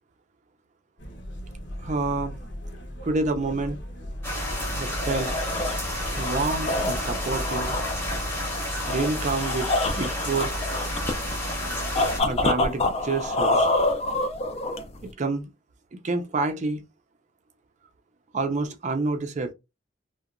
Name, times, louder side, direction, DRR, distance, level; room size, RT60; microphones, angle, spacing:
sound 1, 1.0-8.2, equal, 60° left, 0.7 m, -38 dB
voice 1, 1.8-2.3 3.0-3.8 4.8-5.3 6.2-7.7 8.9-10.7 12.3-13.7 15.0-15.5 15.9-16.8 18.3-19.5, right 3 dB, 40° right, 0.4 m, -28 dB
sound 2, 4.2-12.2, left 1 dB, 10° left, 0.8 m, -30 dB
sound 3, 4.8-15.1, left 2 dB, 30° left, 0.4 m, -27 dB
2.8 x 2.1 x 2.4 m
head